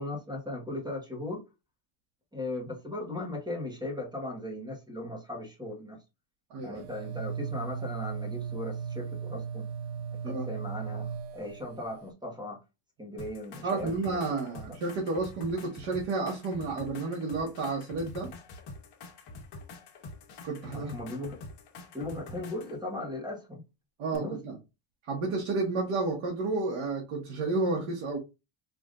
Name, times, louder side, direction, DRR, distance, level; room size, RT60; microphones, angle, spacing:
voice 1, 0.0-1.4 2.3-6.0 6.6-9.7 10.2-11.1 11.3-12.6 13.0-14.6 20.6-21.4 21.9-23.6 24.1-24.4, left 1 dB, 10° right, 1.0 m, -37 dB
voice 2, 6.5-6.8 10.2-10.5 13.6-18.3 20.4-20.9 24.0-24.6 25.0-28.2, right 3 dB, 65° right, 1.3 m, -31 dB
sound 1, 6.8-12.1, right 7 dB, 50° right, 0.6 m, -37 dB
sound 2, 13.2-22.8 24.1-24.2, left 3 dB, 50° left, 1.2 m, -46 dB
5.0 x 2.5 x 2.5 m
cardioid pair, 165°, 50 cm